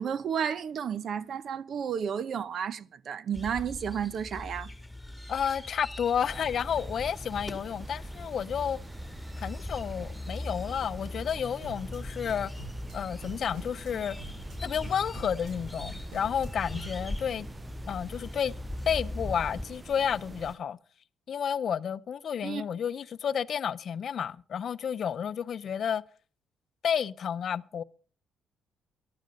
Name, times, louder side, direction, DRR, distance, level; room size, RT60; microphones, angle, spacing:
voice 1, 0.0-4.7 22.4-22.6, right 7 dB, 60° right, 0.8 m, -32 dB
sound 1, 3.3-19.6, left 1 dB, 5° left, 2.3 m, -40 dB
voice 2, 5.3-8.8 9.4-12.5 12.9-14.2 14.6-17.5 17.9-18.5 18.8-20.8 21.3-26.0 26.8-27.8, left 8 dB, 60° left, 0.6 m, -31 dB
sound 2, 6.2-20.5, right 3 dB, 20° right, 0.5 m, -46 dB
sound 3, 11.0-11.3 11.6-12.0 12.2-12.9 13.2-13.9 14.2-14.6 14.8-15.5 15.8-16.5 16.8-16.9, right 4 dB, 80° right, 5.8 m, -47 dB
15.0 x 11.5 x 5.2 m
cardioid pair, 90°, 0 cm